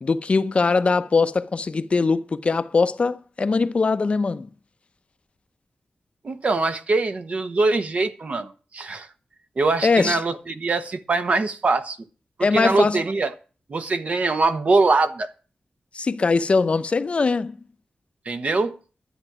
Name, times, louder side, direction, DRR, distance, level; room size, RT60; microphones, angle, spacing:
voice 1, 0.0-4.5 9.8-10.2 12.4-13.0 15.9-17.6, left 4 dB, 40° left, 0.7 m, -21 dB
voice 2, 6.2-9.1 9.6-12.0 12.4-13.3 13.7-15.3 18.2-18.8, right 3 dB, 50° right, 1.1 m, -23 dB
12.0 x 8.9 x 6.0 m
wide cardioid pair, 150°, 3 cm